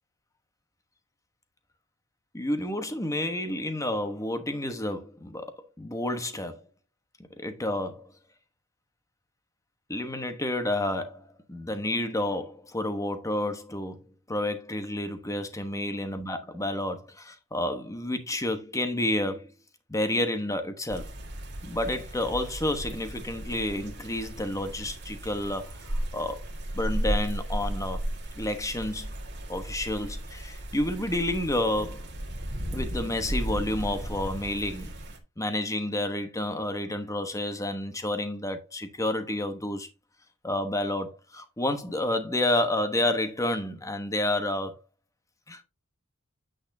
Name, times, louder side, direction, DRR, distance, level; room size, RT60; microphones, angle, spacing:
voice 1, 2.3-6.6 7.4-8.1 9.9-11.2 11.5-19.5 19.9-21.1 21.6-25.8 26.1-26.4 26.7-28.0 28.4-29.1 29.5-32.0 32.7-34.9 35.4-39.9 40.4-44.7 45.5-45.6, left 1 dB, 15° left, 1.1 m, -30 dB
sound 1, 20.9-35.2, right 1 dB, 50° right, 1.7 m, -35 dB
8.6 x 6.3 x 2.7 m
head